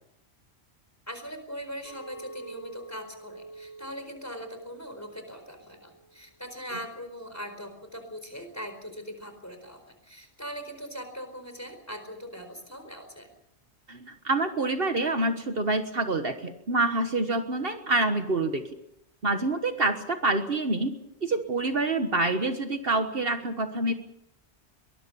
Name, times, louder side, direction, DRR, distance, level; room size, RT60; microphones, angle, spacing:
voice 1, 1.1-13.3, equal, 15° left, 7 dB, 4.5 m, -40 dB
Chink clink, 1.8-6.2 6.5-7.0, right 3 dB, 85° left, 5.5 m, -47 dB
voice 2, 13.9-18.7 19.2-20.9 21.2-23.9, right 2 dB, 55° right, 7 dB, 1.6 m, -27 dB
23.0 x 20.0 x 7.0 m, 0.78 s
omnidirectional pair, 1.2 m